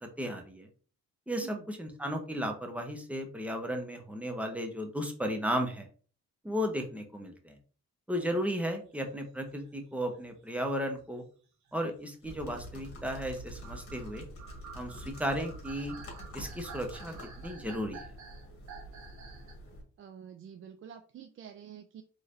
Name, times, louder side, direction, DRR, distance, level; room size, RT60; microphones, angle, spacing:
voice 1, 0.0-0.7 1.3-5.9 6.4-7.6 8.1-11.2 11.7-14.3 14.7-15.9 16.3-18.0, equal, 5° right, 4 dB, 0.9 m, -34 dB
sound 1, 8.8-11.1 11.6-12.8 13.4-19.7, right 5 dB, 75° right, 1.2 m, -51 dB
sound 2, 12.2-19.8, right 1 dB, 50° left, 1.5 m, -46 dB
voice 2, 20.0-22.0, right 8 dB, 45° right, 7 dB, 0.4 m, -48 dB
3.9 x 3.2 x 2.6 m, 0.41 s
cardioid pair, 90°, 30 cm